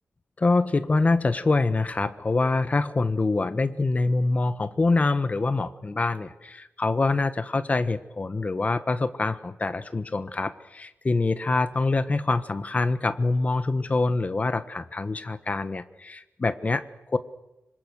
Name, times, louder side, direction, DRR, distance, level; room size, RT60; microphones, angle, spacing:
voice 1, 0.4-17.2, left 3 dB, 35° left, 12 dB, 1.3 m, -25 dB
26.5 x 25.5 x 6.4 m, 0.95 s
wide cardioid pair, 145°, 4 cm